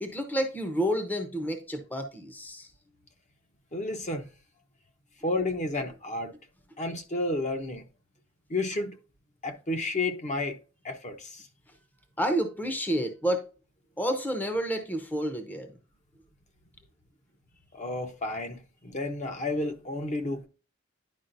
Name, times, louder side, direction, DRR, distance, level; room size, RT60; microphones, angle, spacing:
voice 1, 0.0-2.7 12.2-13.5 14.0-15.7, equal, 10° left, 0.8 m, -29 dB
voice 2, 3.7-4.3 5.2-6.3 6.8-7.8 8.5-8.9 9.4-10.6 10.8-11.4 17.7-20.5, left 2 dB, 35° left, 1.0 m, -31 dB
10.5 x 4.9 x 2.6 m
head